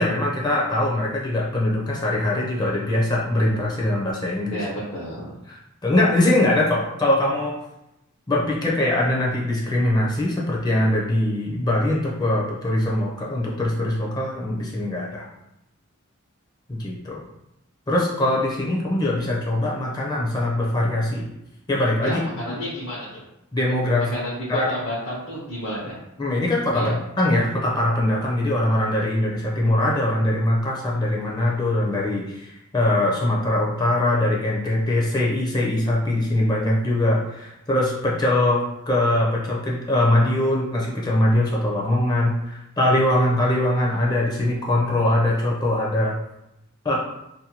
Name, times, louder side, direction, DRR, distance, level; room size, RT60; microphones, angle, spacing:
voice 1, 0.0-4.7 5.5-7.6 8.3-15.3 16.7-17.2 17.9-21.3 21.7-22.2 23.5-24.1 24.5-24.7 26.2-26.9 27.2-46.2 46.8-46.9, left 1 dB, 20° left, -4 dB, 0.4 m, -22 dB
voice 2, 4.5-5.3 22.0-23.2 23.9-25.9 26.7-26.9, equal, 70° left, -7 dB, 0.7 m, -30 dB
2.6 x 2.2 x 2.8 m, 0.87 s
head